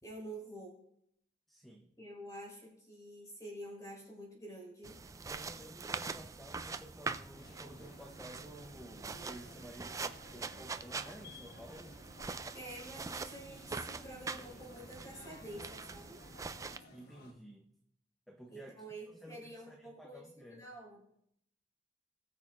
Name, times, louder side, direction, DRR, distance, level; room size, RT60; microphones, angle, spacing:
voice 1, 0.0-0.8 2.0-5.0 12.5-16.2 18.5-21.0, right 1 dB, 20° left, -3 dB, 3.8 m, -48 dB
voice 2, 1.5-2.0 5.2-12.0 16.9-17.7 18.3-20.6, equal, ahead, 1 dB, 0.7 m, -53 dB
sound 1, 4.8-16.8, right 4 dB, 20° right, 0.3 m, -44 dB
sound 2, 7.3-17.3, left 2 dB, 60° left, 1.2 m, -56 dB
19.5 x 6.5 x 2.5 m, 0.72 s
head